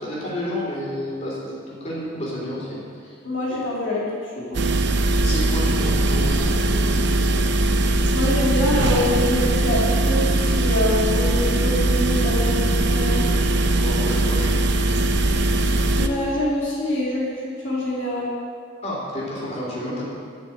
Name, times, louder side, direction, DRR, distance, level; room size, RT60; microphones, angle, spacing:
voice 1, 0.0-3.1 3.5-3.6 5.2-6.9 13.7-14.6 18.8-20.1, equal, 35° left, -6 dB, 3.9 m, -30 dB
voice 2, 3.2-4.7 8.1-13.3 15.9-18.3, left 1 dB, 75° left, -5 dB, 2.3 m, -25 dB
sound 1, 4.5-16.1, right 2 dB, 60° right, 0.7 m, -20 dB
10.5 x 6.8 x 9.0 m, 2.1 s
head